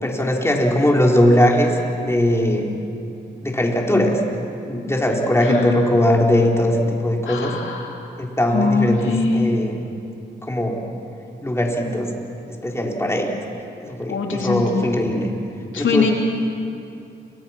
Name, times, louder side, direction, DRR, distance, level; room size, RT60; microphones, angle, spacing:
voice 1, 0.0-2.7 3.4-4.2 4.7-7.5 8.2-9.8 10.4-10.8 11.4-12.1 12.6-13.3 13.8-15.3 15.8-16.1, left 1 dB, 15° left, -1 dB, 4.6 m, -19 dB
voice 2, 5.4-5.9 7.2-8.0 8.5-9.5 14.1-14.8 15.7-16.1, left 4 dB, 75° left, 0 dB, 3.0 m, -22 dB
28.5 x 25.0 x 6.1 m, 2.6 s
cardioid pair, 65°, 20 cm